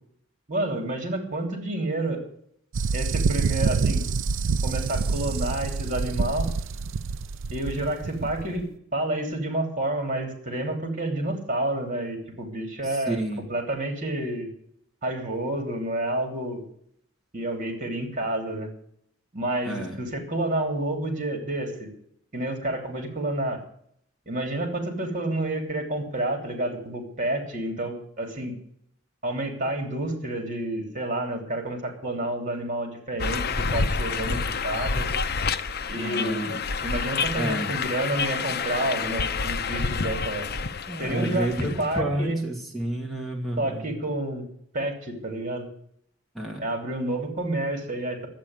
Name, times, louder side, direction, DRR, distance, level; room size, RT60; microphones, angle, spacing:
voice 1, 0.5-2.2 2.9-4.0 4.6-6.5 7.5-8.7 8.9-13.2 13.5-14.5 15.0-16.6 17.3-18.7 19.3-21.9 22.3-23.6 24.3-28.5 29.2-35.1 35.9-40.5 41.0-42.4 43.6-44.4 44.7-45.7 46.6-48.3, right 1 dB, 40° right, 4 dB, 3.3 m, -29 dB
sound 1, 2.7-8.6, right 4 dB, 80° right, 0.4 m, -27 dB
voice 2, 12.8-13.4 19.6-20.0 35.9-36.6 37.4-37.7 40.9-43.9 46.3-46.6, right 1 dB, ahead, -1 dB, 2.3 m, -30 dB
sound 2, 33.2-42.0, left 4 dB, 55° left, 0.7 m, -28 dB
11.5 x 8.6 x 9.5 m, 0.69 s
head